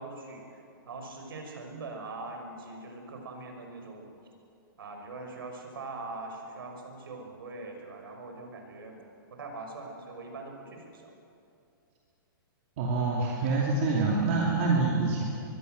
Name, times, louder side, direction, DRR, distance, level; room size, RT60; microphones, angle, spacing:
voice 1, 0.0-4.1 4.8-11.1, right 3 dB, 70° right, 3 dB, 5.9 m, -42 dB
voice 2, 12.8-15.2, right 3 dB, 30° right, -2 dB, 2.7 m, -26 dB
24.0 x 22.0 x 8.0 m, 2.6 s
hypercardioid pair, 175°, 12 cm